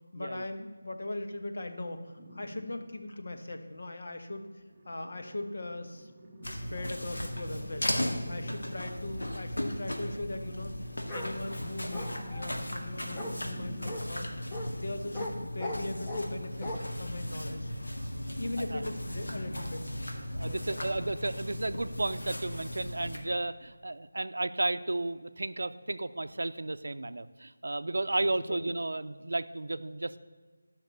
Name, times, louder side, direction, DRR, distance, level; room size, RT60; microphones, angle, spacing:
voice 1, 0.1-4.4 4.8-6.1 6.5-7.9 8.3-10.7 11.1-17.7 18.4-19.9 20.5-20.8 28.2-28.6, left 2 dB, 60° left, 6 dB, 1.3 m, -39 dB
sound 1, 2.2-2.9 4.6-9.2 10.7-14.2, equal, 10° right, 1.0 m, -49 dB
sound 2, 6.4-23.2, left 1 dB, 85° left, 1.9 m, -37 dB
Bark, 11.1-11.3 11.9-12.5 13.1-13.3 13.9-14.0 14.5-14.7 15.1-15.3 15.6-16.3 16.6-16.8, left 1 dB, 15° left, 0.9 m, -38 dB
voice 2, 20.3-30.2, right 2 dB, 70° right, 12 dB, 0.5 m, -33 dB
12.0 x 5.9 x 6.8 m, 1.5 s
figure-of-eight pair, 170°, 0 cm